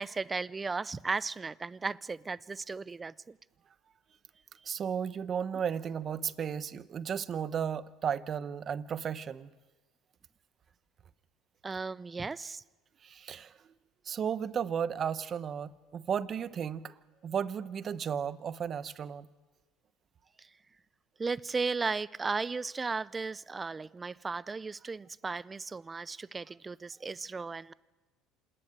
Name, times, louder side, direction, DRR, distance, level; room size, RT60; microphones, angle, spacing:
voice 1, 0.0-3.4 11.6-12.6 20.4-20.5 21.2-27.7, right 4 dB, 20° right, 21 dB, 0.5 m, -35 dB
voice 2, 4.6-9.5 13.0-13.5 14.0-16.9 17.2-19.3, right 8 dB, 40° right, 15 dB, 0.9 m, -34 dB
27.0 x 11.0 x 9.3 m, 1.3 s
supercardioid pair, 95°, 0 cm